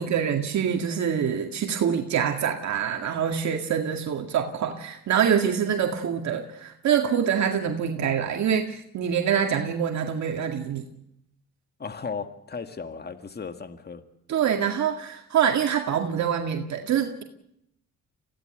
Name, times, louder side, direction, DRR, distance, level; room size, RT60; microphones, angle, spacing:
voice 1, 0.0-10.8 14.3-17.2, right 8 dB, 65° right, 3 dB, 2.1 m, -25 dB
voice 2, 11.8-14.0, left 5 dB, 35° left, 8 dB, 1.9 m, -35 dB
24.5 x 16.5 x 8.0 m, 0.77 s
cardioid pair, 90°, 30 cm